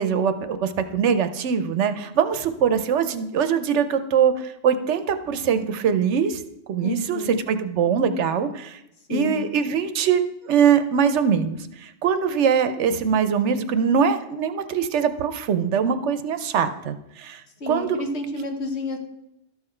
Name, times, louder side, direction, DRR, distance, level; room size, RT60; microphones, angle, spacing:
voice 1, 0.0-6.4 6.7-8.8 9.1-17.4 17.7-18.0, right 7 dB, 80° right, 10 dB, 1.0 m, -22 dB
voice 2, 6.8-7.4 9.1-9.5 17.6-19.0, left 2 dB, 70° left, 3 dB, 1.4 m, -29 dB
12.5 x 5.9 x 4.4 m, 0.85 s
omnidirectional pair, 1.2 m